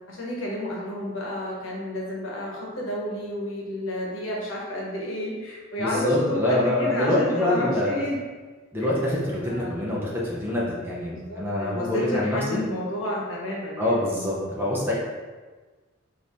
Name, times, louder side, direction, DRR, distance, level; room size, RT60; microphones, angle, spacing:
voice 1, 0.1-8.2 9.4-9.9 11.1-14.0, left 1 dB, 75° left, -3 dB, 1.0 m, -31 dB
voice 2, 5.8-8.0 8.7-12.6 13.8-14.9, left 1 dB, 10° right, -6 dB, 0.8 m, -25 dB
4.7 x 2.7 x 3.5 m, 1.3 s
head